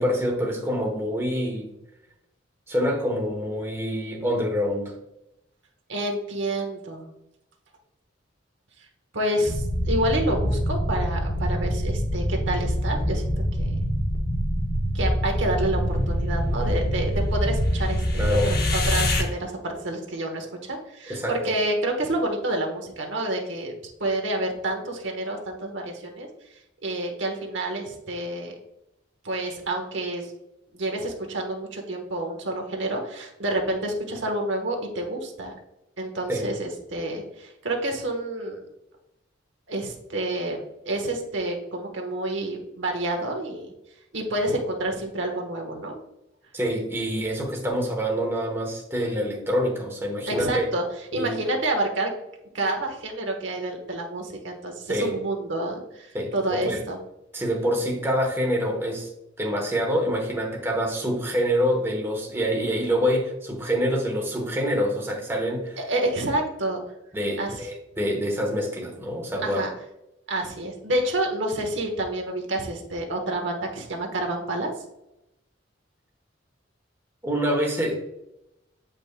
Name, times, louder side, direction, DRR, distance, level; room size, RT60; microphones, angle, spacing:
voice 1, 0.0-1.8 2.7-4.9 18.2-18.5 21.1-21.5 36.3-36.5 46.5-50.7 51.1-51.4 54.9-55.1 56.1-56.8 57.3-59.1 59.4-65.8 67.1-69.7 77.2-77.9, equal, 15° right, 0 dB, 1.0 m, -26 dB
voice 2, 5.9-7.1 9.1-13.2 13.6-13.8 14.9-23.7 24.0-26.3 26.8-28.5 29.2-30.3 30.7-35.5 36.0-38.6 39.7-43.7 44.1-45.9 50.3-50.8 51.1-52.1 52.5-57.0 65.8-66.8 67.4-67.7 69.4-69.7 70.3-74.7, right 1 dB, 70° right, 2 dB, 1.2 m, -28 dB
sound 1, 9.5-19.2, equal, 55° left, 1.0 m, -25 dB
7.9 x 5.3 x 2.2 m, 0.87 s
head